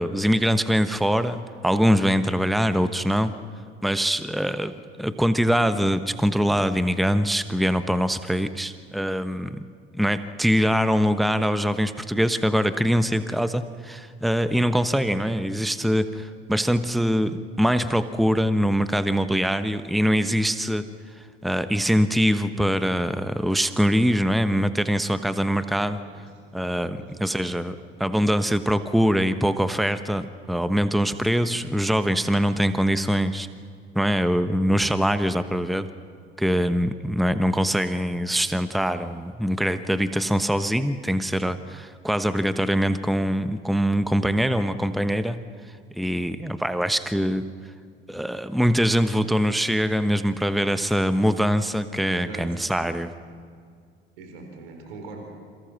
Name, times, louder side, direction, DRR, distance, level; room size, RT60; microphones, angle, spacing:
voice 1, 0.0-3.3 3.8-9.7 9.9-20.9 21.2-26.0 26.5-33.5 33.9-35.9 36.4-47.5 48.1-53.1, equal, ahead, 12 dB, 1.1 m, -23 dB
voice 2, 52.1-52.7 54.2-55.5, right 3 dB, 65° right, 3 dB, 4.4 m, -41 dB
29.0 x 28.0 x 6.1 m, 2.2 s
figure-of-eight pair, 55°, 31 cm